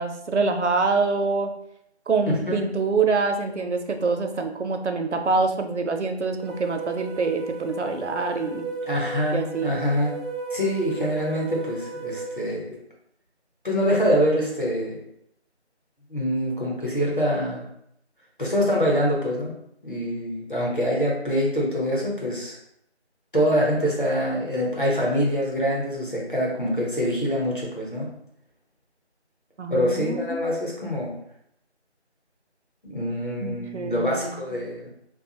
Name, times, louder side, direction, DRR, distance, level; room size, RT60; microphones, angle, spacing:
voice 1, 0.0-1.5 2.1-8.7 9.3-9.8 29.6-30.5 33.4-34.6, right 4 dB, 80° right, 5 dB, 0.6 m, -25 dB
voice 2, 2.3-2.6 8.9-10.1 10.5-12.8 13.6-15.0 16.1-17.7 18.4-19.5 19.8-22.6 23.3-28.1 29.7-31.1 32.8-34.9, equal, 45° left, -3 dB, 0.9 m, -25 dB
sound 1, 6.4-12.4, right 3 dB, ahead, 0.4 m, -35 dB
3.3 x 2.3 x 2.8 m, 0.74 s
figure-of-eight pair, 180°, 34 cm